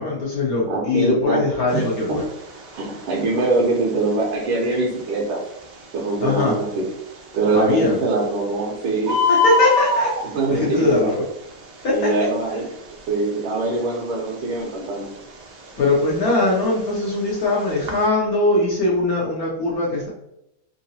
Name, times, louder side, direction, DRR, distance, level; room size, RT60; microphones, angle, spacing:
voice 1, 0.0-2.2 6.2-6.6 7.5-8.0 9.3-11.2 11.8-12.3 15.8-20.1, left 2 dB, 60° left, -4 dB, 1.0 m, -21 dB
voice 2, 0.7-1.4 1.7-1.8 2.1-2.2 2.8-5.4 5.9-6.9 7.3-9.2 10.2-11.1 11.9-12.6 13.1-15.1, right 3 dB, 80° right, -4 dB, 1.6 m, -23 dB
Bird, 1.7-18.0, left 3 dB, 65° right, 0.9 m, -28 dB
3.9 x 2.6 x 2.7 m, 0.82 s
omnidirectional pair, 2.2 m